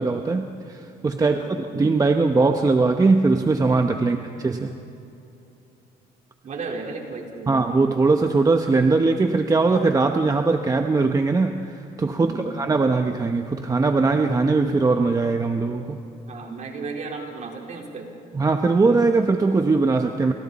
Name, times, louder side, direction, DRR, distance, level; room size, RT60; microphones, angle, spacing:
voice 1, 0.0-4.7 7.5-16.0 18.3-20.3, right 3 dB, 20° right, 5 dB, 1.0 m, -20 dB
voice 2, 1.2-1.6 4.0-4.2 6.4-7.6 12.2-12.5 16.3-18.1, right 4 dB, 45° right, 0 dB, 4.2 m, -34 dB
29.5 x 27.5 x 4.2 m, 2.8 s
cardioid pair, 110°, 17 cm